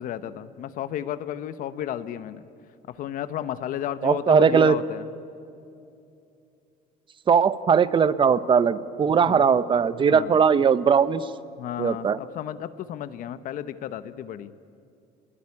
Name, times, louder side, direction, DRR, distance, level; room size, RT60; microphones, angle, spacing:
voice 1, 0.0-2.4 2.9-5.1 9.2-9.4 10.1-10.3 11.6-14.5, left 10 dB, 60° left, 13 dB, 1.0 m, -33 dB
voice 2, 4.0-4.8 7.3-11.2 11.8-12.2, right 6 dB, 30° right, 15 dB, 0.8 m, -19 dB
25.5 x 21.5 x 9.8 m, 2.6 s
cardioid pair, 130°, 16 cm